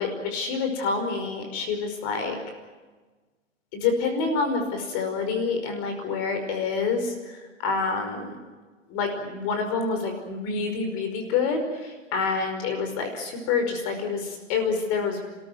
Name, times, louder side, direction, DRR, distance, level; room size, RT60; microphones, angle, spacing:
voice 1, 0.0-2.4 3.7-7.1 7.6-8.3 8.9-15.2, left 4 dB, 40° left, 6 dB, 5.3 m, -27 dB
29.5 x 14.5 x 9.3 m, 1.3 s
hypercardioid pair, 130°, 38 cm